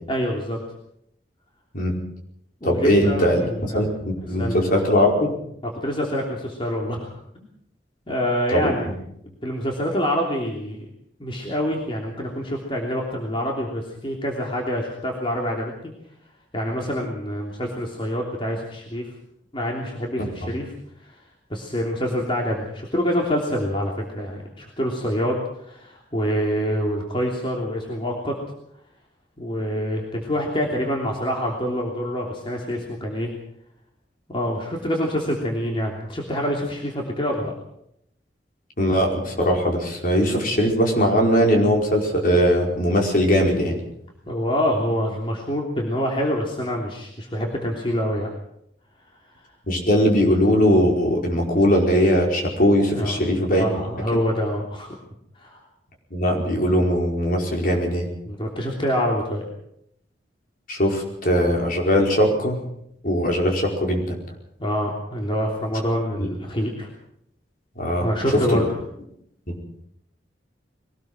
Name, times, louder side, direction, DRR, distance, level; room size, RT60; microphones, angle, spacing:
voice 1, 0.1-0.6 2.6-3.8 4.2-4.7 5.8-7.1 8.1-8.9 9.2-10.9 11.2-15.9 16.5-19.1 19.5-20.7 21.0-21.2 21.5-28.4 29.4-33.3 34.3-37.5 44.2-48.3 49.4-49.5 52.9-54.9 55.3-55.6 58.2-59.5 64.6-66.9 68.0-68.6, equal, 30° left, -1 dB, 3.2 m, -26 dB
voice 2, 2.6-5.4 8.5-8.7 20.2-20.3 38.8-43.8 49.7-53.7 56.1-58.1 60.7-62.6 63.0-64.1 66.2-66.3 67.8-68.1 68.5-68.7 69.5-69.6, equal, 50° left, 1 dB, 4.9 m, -20 dB
22.5 x 19.0 x 6.1 m, 0.75 s
head